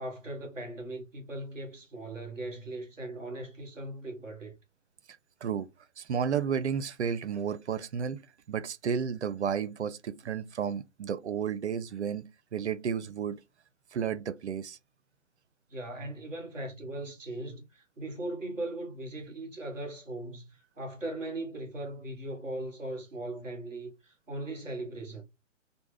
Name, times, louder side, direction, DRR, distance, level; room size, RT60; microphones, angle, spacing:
voice 1, 0.0-4.5 15.7-25.2, right 2 dB, ahead, 0.4 m, -39 dB
voice 2, 6.0-8.2 8.5-13.4 13.9-14.8, right 7 dB, 65° right, 0.5 m, -32 dB
3.4 x 2.2 x 3.2 m
figure-of-eight pair, 130°, 37 cm